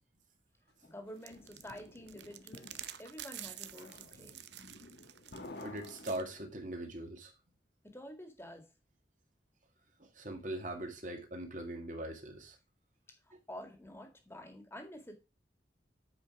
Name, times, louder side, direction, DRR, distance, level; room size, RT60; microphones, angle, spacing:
sound 1, 0.8-6.7, left 2 dB, 65° left, 1.2 m, -53 dB
voice 1, 0.8-4.4 7.8-8.7 13.2-15.1, equal, 15° left, 1.9 m, -49 dB
sound 2, 1.2-6.2, right 12 dB, 75° right, 0.7 m, -49 dB
voice 2, 5.6-7.3 10.0-12.6 13.3-13.4, right 1 dB, 45° right, 1.9 m, -41 dB
8.5 x 5.1 x 4.7 m
head